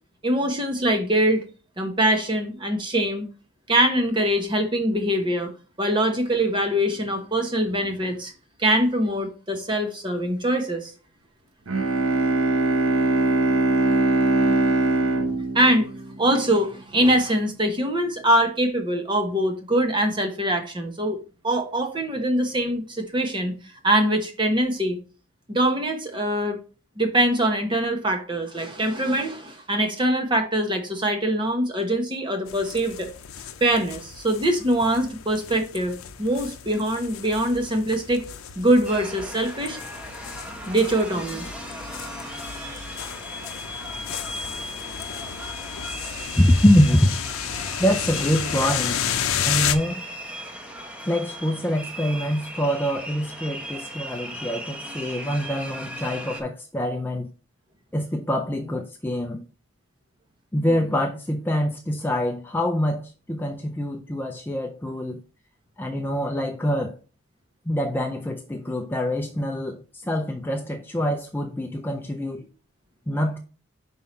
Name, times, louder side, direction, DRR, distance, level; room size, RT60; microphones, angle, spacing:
voice 1, 0.2-1.4 1.8-3.3 3.7-5.5 5.8-8.3 8.6-10.9 15.2-15.9 16.2-21.2 21.4-23.5 23.8-25.0 25.5-26.6 27.0-33.1 33.6-38.3 38.6-39.8 40.7-41.5, right 1 dB, 20° right, 1.1 m, -23 dB
Bowed string instrument, 11.7-16.6, right 2 dB, 75° right, 0.9 m, -22 dB
sound 1, 32.5-49.7, left 9 dB, 75° left, 0.6 m, -33 dB
sound 2, 38.8-56.4, equal, 5° right, 0.8 m, -37 dB
voice 2, 46.3-47.2 47.8-49.2 49.4-50.0 51.1-57.3 57.9-59.5 60.5-65.2 65.8-67.0 67.7-72.5 73.1-73.4, equal, 10° left, 0.4 m, -24 dB
5.5 x 4.8 x 4.3 m
head